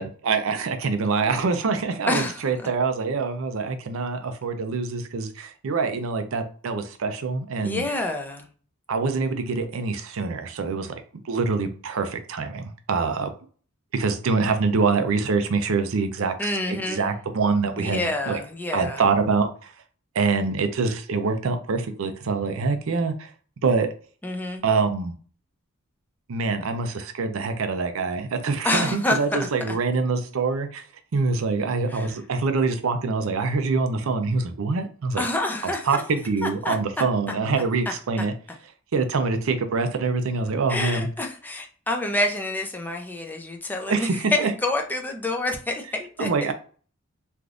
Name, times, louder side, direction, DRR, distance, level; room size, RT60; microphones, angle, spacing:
voice 1, 0.0-7.8 8.9-10.9 11.2-13.3 13.9-18.4 18.7-19.7 20.1-23.3 23.6-23.9 24.6-25.1 26.3-30.8 31.1-35.2 35.6-38.3 38.9-41.1 43.9-44.5 46.2-46.5, right 4 dB, 70° right, 8 dB, 0.5 m, -25 dB
voice 2, 2.1-2.4 7.6-8.5 16.4-17.1 17.8-19.0 24.2-24.6 28.6-29.8 31.9-32.2 35.2-36.0 36.4-37.0 40.7-46.5, left 2 dB, 10° left, 3 dB, 0.4 m, -28 dB
3.3 x 2.5 x 2.4 m, 0.42 s
head